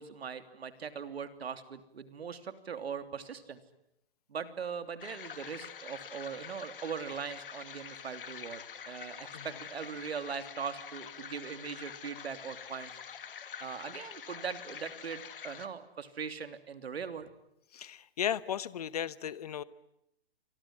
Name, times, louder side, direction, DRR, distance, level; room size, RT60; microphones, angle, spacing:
voice 1, 0.0-3.6 4.3-12.9 13.6-17.3, right 6 dB, 80° right, 11 dB, 3.1 m, -40 dB
sound 1, 5.0-15.7, left 7 dB, 60° left, 2.4 m, -46 dB
voice 2, 17.7-19.6, left 10 dB, 40° left, 18 dB, 1.0 m, -35 dB
29.5 x 24.5 x 7.7 m, 0.82 s
hypercardioid pair, 170°, 31 cm